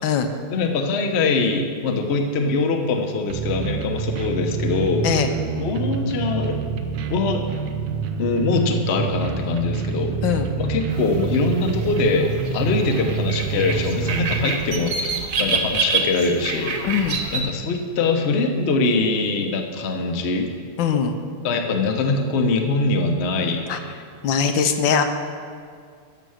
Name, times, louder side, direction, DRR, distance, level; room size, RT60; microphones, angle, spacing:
voice 1, 0.5-5.1 5.6-6.6 7.1-7.4 8.2-10.2 10.6-17.1 17.3-20.5 21.4-23.7, left 3 dB, 45° left, 3 dB, 0.9 m, -23 dB
sound 1, 3.3-14.5, right 6 dB, 85° right, 1.5 m, -27 dB
sound 2, 10.9-17.4, right 4 dB, 55° right, 1.1 m, -28 dB
voice 2, 16.8-17.2 20.8-21.1 23.7-23.8 24.2-25.0, left 7 dB, 75° left, 7 dB, 1.4 m, -21 dB
11.0 x 6.9 x 6.4 m, 2.1 s
omnidirectional pair, 2.1 m